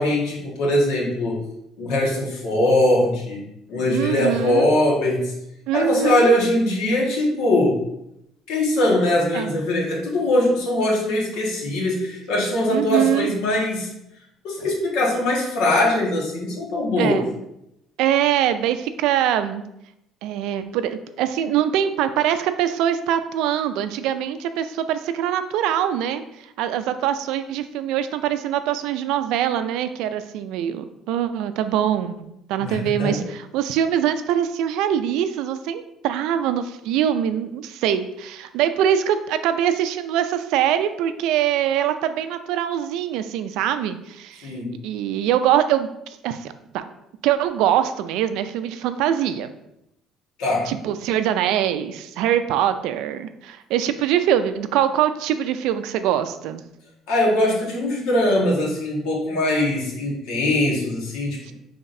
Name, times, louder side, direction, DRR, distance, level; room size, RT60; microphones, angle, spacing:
voice 1, 0.0-1.4 1.8-3.4 3.7-5.3 5.7-7.8 8.5-13.9 14.4-17.2 32.6-33.2 44.4-44.7 50.4-50.7 57.1-61.5, left 1 dB, 80° left, -3 dB, 1.5 m, -21 dB
voice 2, 3.9-4.7 5.7-6.4 9.3-9.6 12.7-13.3 17.0-17.3 18.0-19.6 20.2-26.2 26.6-44.5 44.8-46.8 47.2-49.5 50.7-56.6 61.5-61.6, right 10 dB, 80° right, 10 dB, 0.4 m, -23 dB
5.7 x 3.5 x 2.6 m, 0.82 s
cardioid pair, 150°, 0 cm